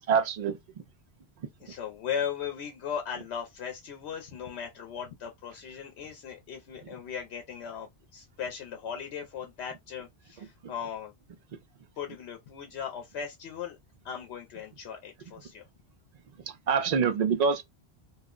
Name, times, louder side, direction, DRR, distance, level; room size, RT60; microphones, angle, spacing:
voice 1, 0.1-0.8 1.4-1.5 6.8-6.9 10.4-10.7 16.3-17.6, right 6 dB, 55° right, 0.5 m, -27 dB
voice 2, 1.6-11.1 12.0-13.8 14.0-15.7, left 7 dB, 80° left, 0.8 m, -38 dB
2.3 x 2.1 x 3.6 m
omnidirectional pair, 1.1 m